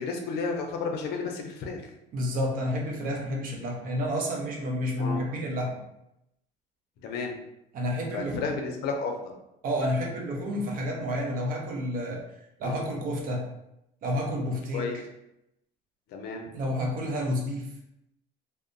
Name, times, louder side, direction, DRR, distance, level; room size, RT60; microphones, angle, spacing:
voice 1, 0.0-1.9 5.0-5.2 7.0-7.4 8.1-9.2 12.6-12.8 14.7-15.0 16.1-16.5, left 4 dB, 70° left, 2 dB, 0.5 m, -32 dB
voice 2, 2.1-5.8 7.7-8.5 9.6-12.2 12.6-13.5 14.0-14.8 16.5-17.7, equal, 55° right, 0 dB, 0.6 m, -30 dB
2.8 x 2.0 x 2.5 m, 0.83 s
cardioid pair, 140°, 17 cm